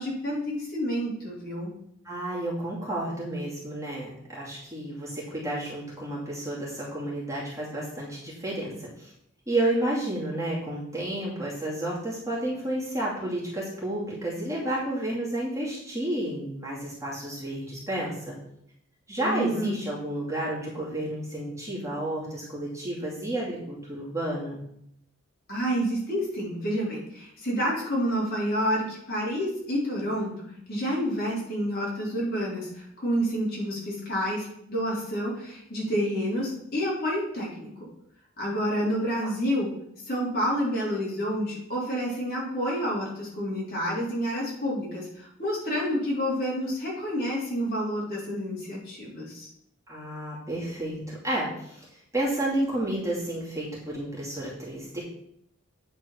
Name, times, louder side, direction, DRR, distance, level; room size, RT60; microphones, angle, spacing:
voice 1, 0.0-1.7 19.2-19.7 25.5-37.7 38.4-39.7 40.1-49.5, equal, 45° left, -5 dB, 3.6 m, -29 dB
voice 2, 2.0-9.1 9.5-18.4 19.1-24.6 39.2-39.3 49.9-51.9 52.1-55.0, right 1 dB, 15° right, -6 dB, 2.5 m, -31 dB
9.1 x 4.5 x 5.9 m, 0.73 s
head